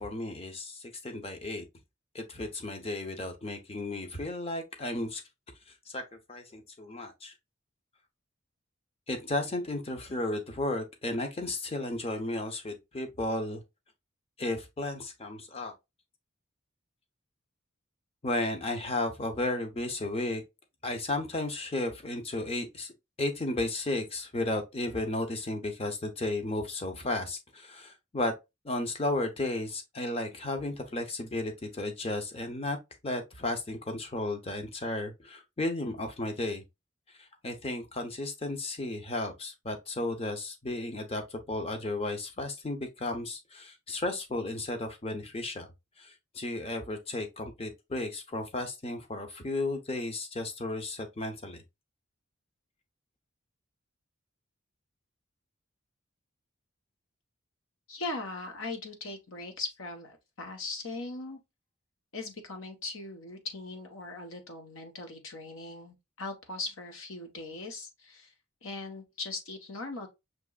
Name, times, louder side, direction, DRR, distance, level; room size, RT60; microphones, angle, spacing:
voice 1, 0.0-1.7 2.1-5.2 5.9-6.0 6.3-7.3 9.1-13.6 14.4-15.7 18.2-20.4 20.8-22.9 23.2-28.3 28.6-32.8 33.0-36.6 37.2-45.7 46.0-51.6, left 2 dB, 30° left, 0.7 m, -34 dB
voice 2, 57.9-61.4 62.1-68.3 68.6-70.1, left 3 dB, 80° left, 1.1 m, -39 dB
6.0 x 3.0 x 2.3 m
head